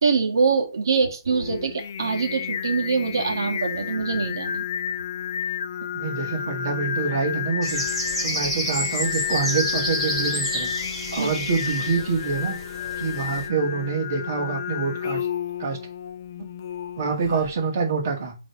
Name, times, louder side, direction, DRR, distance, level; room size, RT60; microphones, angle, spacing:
voice 1, 0.0-4.7 11.2-11.3, right 5 dB, 65° right, 3 dB, 1.6 m, -24 dB
Singing, 1.3-17.5, left 8 dB, 40° left, 0.4 m, -31 dB
voice 2, 5.9-7.8 8.2-10.7 11.1-12.6 13.0-15.3 15.6-15.8 16.4-16.5 17.0-18.4, right 5 dB, 40° right, 2 dB, 1.9 m, -26 dB
sound 1, 7.6-13.5, equal, ahead, 2.3 m, -30 dB
6.2 x 3.4 x 4.5 m, 0.29 s
hypercardioid pair, 165°, 2 cm